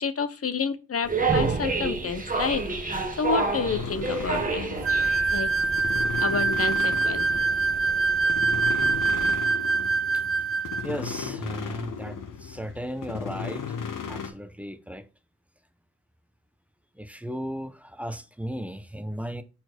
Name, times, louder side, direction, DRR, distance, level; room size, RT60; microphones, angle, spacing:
voice 1, 0.0-4.7 5.3-5.5 6.2-7.2, left 5 dB, 50° left, 0.8 m, -29 dB
sound 1, 1.0-9.3, right 4 dB, 25° right, 1.1 m, -30 dB
sound 2, 3.6-14.3, left 6 dB, 85° left, 1.1 m, -36 dB
sound 3, 4.8-10.9, right 4 dB, 45° right, 0.7 m, -24 dB
voice 2, 10.8-13.6 14.1-15.0 17.0-19.4, equal, 5° right, 0.6 m, -35 dB
4.6 x 4.3 x 5.9 m
wide cardioid pair, 90°, 31 cm